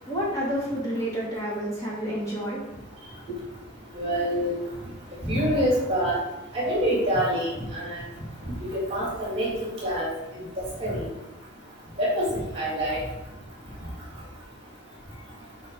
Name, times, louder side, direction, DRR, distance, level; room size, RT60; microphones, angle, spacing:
voice 1, 0.0-2.9 3.3-3.7 4.0-4.1, equal, 20° left, -7 dB, 3.4 m, -30 dB
voice 2, 4.0-4.6 5.2-6.2 6.5-8.0 8.7-10.1 10.8-11.1 12.0-12.3 12.5-13.0, equal, 30° right, -5 dB, 2.9 m, -26 dB
8.4 x 5.3 x 5.0 m, 0.93 s
head